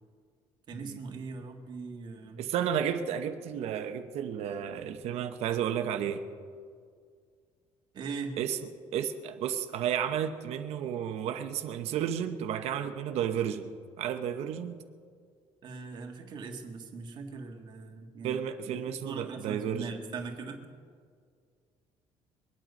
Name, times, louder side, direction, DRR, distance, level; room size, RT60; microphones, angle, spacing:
voice 1, 0.7-2.4 7.9-8.4 15.6-20.6, right 4 dB, 40° right, 2 dB, 1.7 m, -40 dB
voice 2, 2.4-6.2 8.4-14.8 18.2-20.0, right 9 dB, 65° right, 7 dB, 0.9 m, -32 dB
23.0 x 9.1 x 5.3 m, 2.1 s
cardioid pair, 160°, 11 cm